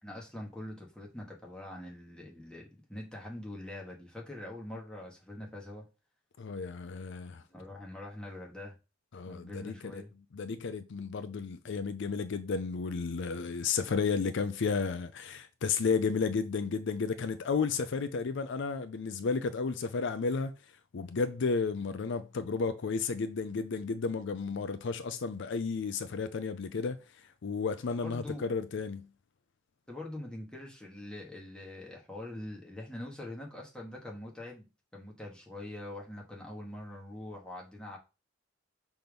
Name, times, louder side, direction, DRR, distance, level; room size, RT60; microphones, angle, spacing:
voice 1, 0.0-5.8 7.5-8.7 9.3-10.1 27.9-28.5 29.9-38.0, left 1 dB, 5° left, 1.7 m, -44 dB
voice 2, 6.4-7.4 9.1-10.0 10.3-20.5 20.9-29.1, left 5 dB, 65° left, 0.5 m, -32 dB
6.0 x 3.5 x 5.2 m
head